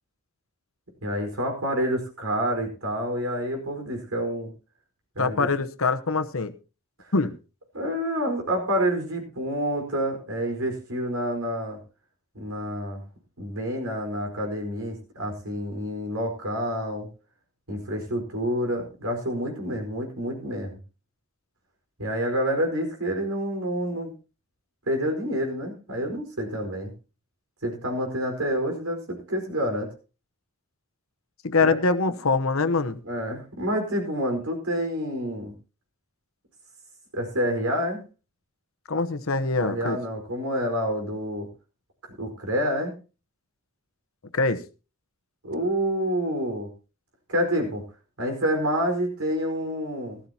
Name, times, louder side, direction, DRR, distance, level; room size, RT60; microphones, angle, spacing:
voice 1, 1.0-4.5 5.1-5.5 7.0-7.1 7.7-11.8 12.3-13.0 13.4-17.1 17.7-20.8 22.0-24.1 24.9-26.9 27.6-29.9 31.6-31.8 33.0-35.5 37.1-38.0 39.6-41.5 42.0-42.9 45.4-46.7 47.3-47.8 48.2-50.2, equal, 80° right, 3 dB, 4.7 m, -28 dB
voice 2, 5.2-6.5 7.1-7.3 31.4-33.0 38.9-40.0 44.3-44.6, left 3 dB, 70° left, 10 dB, 1.0 m, -24 dB
17.0 x 13.5 x 2.9 m, 0.31 s
head